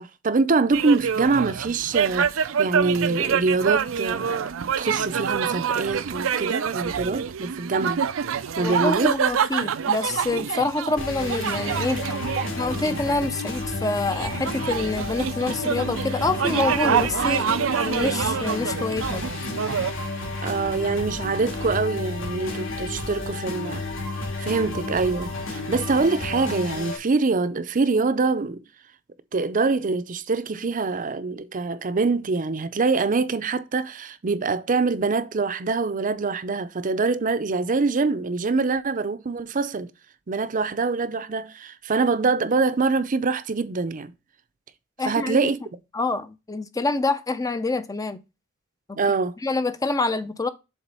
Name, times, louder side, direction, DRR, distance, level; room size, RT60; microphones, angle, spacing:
voice 1, 0.0-4.5 4.8-8.0 8.6-9.1 12.3-12.4 20.4-23.8 24.4-28.6 29.3-39.9 40.3-44.1 45.0-45.6 48.9-49.3, right 4 dB, 40° right, 0.6 m, -24 dB
sound 1, 0.7-19.9, right 7 dB, 90° right, 0.5 m, -26 dB
voice 2, 8.6-12.1 12.6-17.5 17.8-19.3 45.0-45.5 45.9-48.2 48.9-49.0 49.4-50.5, left 3 dB, 20° left, 0.5 m, -26 dB
sound 2, 11.0-27.0, left 2 dB, 75° left, 2.5 m, -31 dB
7.2 x 3.8 x 5.4 m
head